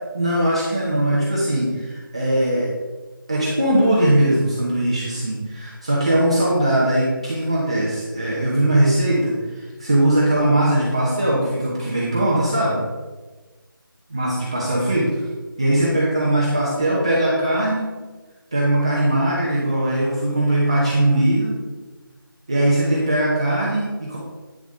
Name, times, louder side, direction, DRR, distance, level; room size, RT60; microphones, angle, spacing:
voice 1, 0.1-2.7 3.3-12.8 14.1-15.2 15.6-17.9 18.5-21.6 22.5-24.2, right 1 dB, 15° right, -7 dB, 0.9 m, -20 dB
9.4 x 6.9 x 3.8 m, 1.3 s
figure-of-eight pair, 175°, 12 cm